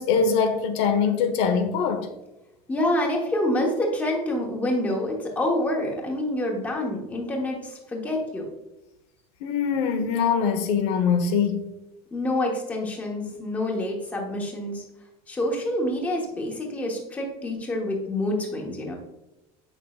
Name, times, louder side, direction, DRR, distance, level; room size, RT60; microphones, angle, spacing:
voice 1, 0.0-2.1 9.4-11.7, left 6 dB, 75° left, 1.0 m, -23 dB
voice 2, 2.7-8.5 12.1-14.8 15.3-19.0, left 1 dB, 10° left, 1.1 m, -27 dB
8.0 x 6.1 x 2.4 m
cardioid pair, 170°, 14 cm